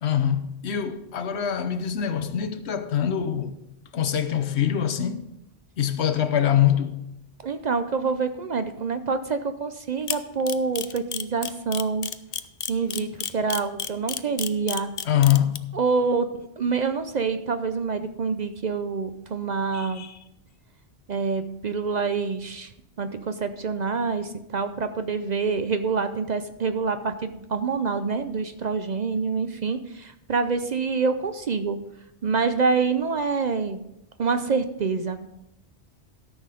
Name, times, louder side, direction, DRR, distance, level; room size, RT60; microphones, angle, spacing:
voice 1, 0.0-3.5 3.9-5.3 5.8-7.0 15.0-15.6 19.7-20.2, left 10 dB, 80° left, 1.1 m, -24 dB
voice 2, 7.4-12.1 12.7-14.9 15.7-20.1 21.1-22.7 23.0-31.8 32.2-33.8 34.2-35.3, right 4 dB, 50° right, 0.6 m, -26 dB
Camera, 10.1-15.6, left 8 dB, 50° left, 0.5 m, -30 dB
13.0 x 6.3 x 5.0 m
omnidirectional pair, 1.1 m